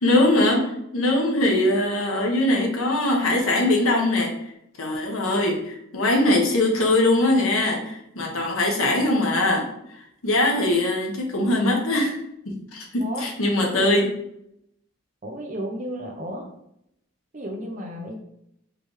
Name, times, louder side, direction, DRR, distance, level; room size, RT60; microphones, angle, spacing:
voice 1, 0.0-4.3 4.8-9.7 10.2-12.1 12.7-14.0, left 1 dB, 80° left, 0 dB, 1.1 m, -21 dB
voice 2, 13.6-14.1 15.2-16.5 17.3-18.2, equal, 35° right, 1 dB, 0.7 m, -33 dB
4.9 x 3.3 x 3.2 m, 0.77 s
head